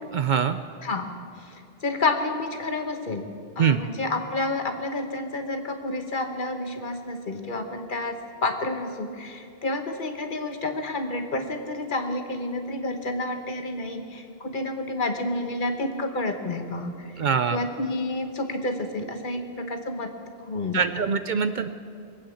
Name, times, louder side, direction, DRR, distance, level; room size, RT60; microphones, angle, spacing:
voice 1, 0.1-0.6 3.6-3.8 17.2-17.6 20.7-21.7, right 7 dB, 60° right, 10 dB, 0.6 m, -23 dB
voice 2, 1.4-3.3 3.6-17.2 17.5-20.1 20.4-20.8, left 2 dB, 55° left, 5 dB, 1.3 m, -30 dB
21.5 x 8.6 x 7.1 m, 2.4 s
omnidirectional pair, 1.0 m